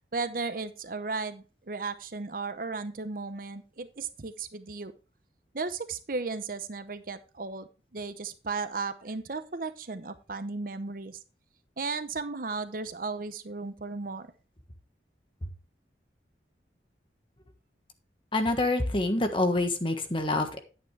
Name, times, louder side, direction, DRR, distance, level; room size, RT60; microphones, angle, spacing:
voice 1, 0.1-4.9 5.5-11.2 11.8-14.3, right 4 dB, 50° right, 11 dB, 0.8 m, -35 dB
voice 2, 18.3-20.6, left 2 dB, 30° left, 6 dB, 1.4 m, -26 dB
10.5 x 8.8 x 3.3 m, 0.34 s
head